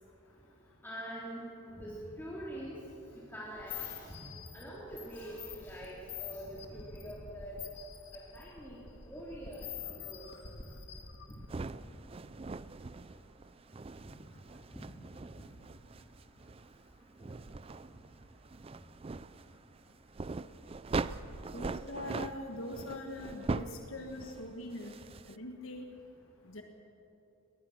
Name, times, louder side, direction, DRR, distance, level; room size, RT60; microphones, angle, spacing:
voice 1, 0.8-1.4 1.7-2.8 3.3-4.3 4.5-7.6 8.3-8.8 9.1-10.3 14.0-14.1 14.7-14.8 15.3-15.4 23.4-23.5, equal, 10° left, -7 dB, 3.0 m, -44 dB
sound 1, 3.5-11.8, left 8 dB, 50° left, 2.1 m, -46 dB
sound 2, 11.5-25.4, right 3 dB, 25° right, 0.4 m, -42 dB
voice 2, 21.5-25.0 25.3-25.9 26.4-26.6, left 1 dB, 70° left, 3 dB, 1.5 m, -42 dB
21.5 x 19.0 x 6.5 m, 2.9 s
head